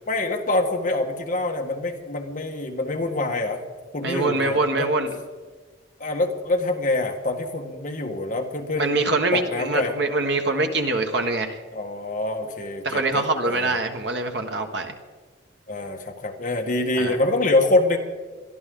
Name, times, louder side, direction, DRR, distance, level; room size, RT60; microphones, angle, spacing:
voice 1, 0.1-3.6 3.9-4.9 6.0-9.0 9.3-9.9 11.7-13.7 15.7-18.0, left 2 dB, 40° left, 2 dB, 1.6 m, -25 dB
voice 2, 4.0-5.1 8.8-11.6 12.8-14.9 17.0-17.2, right 2 dB, 60° right, 5 dB, 1.5 m, -24 dB
22.5 x 13.0 x 3.9 m, 1.4 s
head